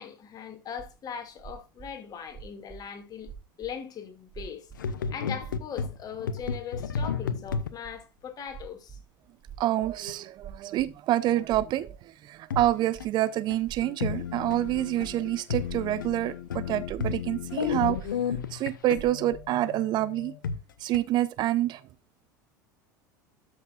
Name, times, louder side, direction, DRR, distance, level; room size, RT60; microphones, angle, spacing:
voice 1, 0.0-3.3 3.6-4.7 5.1-9.0 16.7-16.8, left 8 dB, 35° left, 2.3 m, -40 dB
sound 1, 0.8-0.9 1.4-2.8 3.1-3.7 4.3-4.9 5.3-6.0 6.4-6.9 7.4-8.2 8.4-9.1 9.4-10.9 11.4-12.1 12.5-13.1 13.6-14.3 14.6-15.2 15.5-16.3 16.8-18.5 18.8-19.5, right 7 dB, 15° right, 3.8 m, -45 dB
sound 2, 4.8-7.7 10.1-10.2 10.9-11.0 12.5-12.6 13.0-13.1 13.5-13.6 13.8-20.6 20.9-21.0, left 6 dB, 75° left, 0.7 m, -33 dB
voice 2, 9.6-18.0 18.5-20.3 20.8-21.8, right 14 dB, 45° right, 0.5 m, -27 dB
12.5 x 6.2 x 2.4 m
figure-of-eight pair, 75°, 11 cm